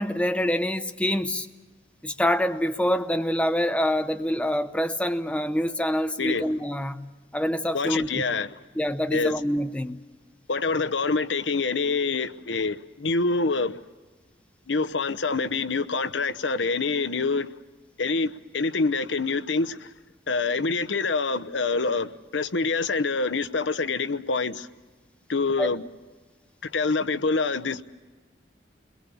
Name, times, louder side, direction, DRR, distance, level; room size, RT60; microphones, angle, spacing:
voice 1, 0.0-1.5 2.0-7.0 7.3-8.2 8.8-10.0 25.6-25.7, equal, 5° left, 0.7 m, -26 dB
voice 2, 7.7-8.6 9.1-9.3 10.5-13.8 14.7-17.5 18.0-19.9 20.3-24.7 25.3-25.8 26.6-27.8, left 4 dB, 85° left, 0.9 m, -26 dB
30.0 x 22.0 x 7.0 m
head